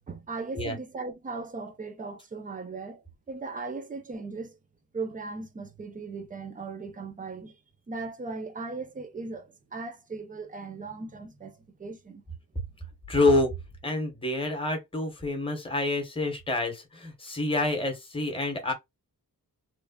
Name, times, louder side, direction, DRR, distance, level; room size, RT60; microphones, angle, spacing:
voice 1, 0.1-4.6 4.9-7.6 7.9-12.2, right 4 dB, 25° right, 0.5 m, -38 dB
voice 2, 13.1-13.5 13.8-18.7, left 2 dB, 15° left, 0.8 m, -27 dB
3.1 x 2.0 x 2.2 m
wide cardioid pair, 165°, 35 cm